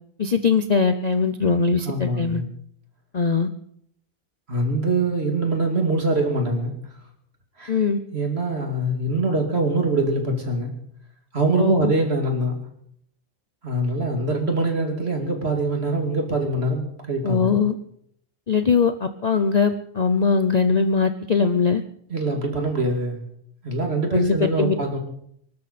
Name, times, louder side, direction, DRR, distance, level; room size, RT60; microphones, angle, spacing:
voice 1, 0.2-2.4 3.1-3.5 7.7-8.0 11.6-11.9 17.2-17.8 18.5-21.8 24.1-24.7, left 5 dB, 40° left, 9 dB, 0.6 m, -21 dB
voice 2, 1.8-2.4 4.5-6.7 7.6-7.8 8.1-10.7 11.3-12.6 13.6-17.6 22.1-23.2 23.6-25.0, right 2 dB, 50° right, 3 dB, 2.8 m, -23 dB
24.0 x 12.5 x 4.2 m, 0.69 s
omnidirectional pair, 1.4 m